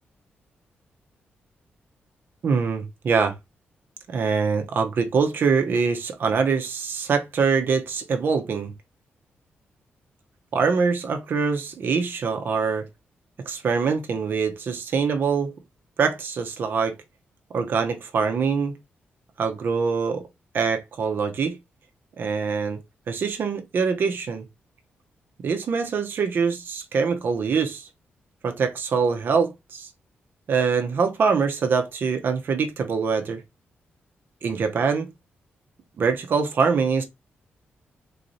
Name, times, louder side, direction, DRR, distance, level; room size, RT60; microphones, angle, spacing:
voice 1, 2.4-3.3 4.1-8.7 10.5-12.9 13.5-15.5 16.0-17.0 17.5-18.8 19.4-20.2 20.5-21.6 22.2-22.8 23.1-24.4 25.4-27.9 28.4-29.9 30.5-33.4 34.4-35.1 36.0-37.0, right 5 dB, 60° right, 0.7 m, -24 dB
3.9 x 3.0 x 2.6 m
cardioid pair, 120°, 4 cm